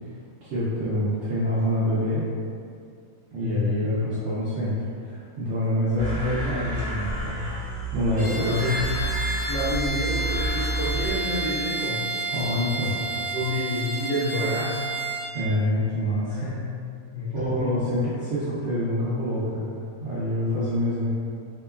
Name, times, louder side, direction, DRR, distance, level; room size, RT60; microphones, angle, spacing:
voice 1, 0.4-2.2 3.3-4.8 5.0-8.5 12.3-13.2 15.3-16.5 17.3-21.1, left 1 dB, 70° right, -10 dB, 0.7 m, -26 dB
voice 2, 3.4-4.0 8.2-9.1 9.5-12.1 13.3-14.8 16.2-17.8, left 2 dB, 65° left, -12 dB, 0.5 m, -29 dB
sound 1, 6.0-11.2, right 2 dB, 20° left, 0.5 m, -30 dB
Bowed string instrument, 8.2-15.3, right 2 dB, 35° left, 1.1 m, -31 dB
2.8 x 2.2 x 2.2 m, 2.4 s
omnidirectional pair, 1.6 m